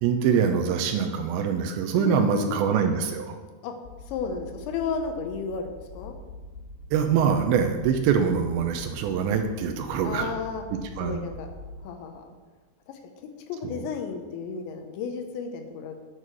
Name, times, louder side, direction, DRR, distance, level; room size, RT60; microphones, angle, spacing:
voice 1, 0.0-3.4 6.9-10.3 11.0-11.2 13.6-13.9, right 7 dB, 85° right, 5 dB, 3.0 m, -24 dB
voice 2, 1.9-2.6 3.6-3.8 4.1-6.1 10.0-10.6 11.0-11.5 11.8-12.3 12.9-13.0 13.5-16.0, left 5 dB, 85° left, 4 dB, 3.2 m, -33 dB
sound 1, 3.8-11.8, left 2 dB, 70° left, 3.9 m, -44 dB
9.2 x 8.3 x 6.2 m, 1.3 s
omnidirectional pair, 5.2 m